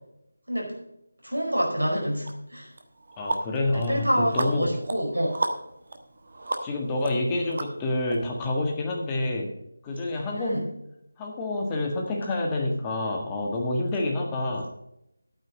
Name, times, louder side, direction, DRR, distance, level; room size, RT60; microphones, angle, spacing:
voice 1, 1.2-2.7 3.7-5.3 10.3-10.6, equal, 65° right, -1 dB, 4.8 m, -27 dB
sound 1, 2.2-2.3 2.8-8.2, right 2 dB, 45° right, 1.2 m, -34 dB
voice 2, 3.2-4.7 6.6-9.5 9.8-10.7 11.2-14.6, left 2 dB, 15° left, 0 dB, 1.5 m, -28 dB
11.0 x 9.1 x 5.2 m, 0.81 s
figure-of-eight pair, 160°, 0 cm